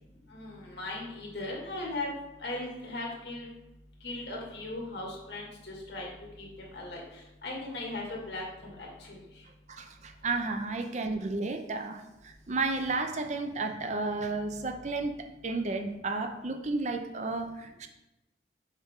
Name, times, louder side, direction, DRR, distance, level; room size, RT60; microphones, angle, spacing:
voice 1, 0.3-2.1 2.4-3.5 4.0-6.1 6.4-6.5 6.7-7.0 7.4-9.2, left 2 dB, 65° left, -2 dB, 2.0 m, -38 dB
voice 2, 9.7-17.9, right 3 dB, 40° right, 6 dB, 0.6 m, -32 dB
7.3 x 5.1 x 3.6 m, 0.93 s
head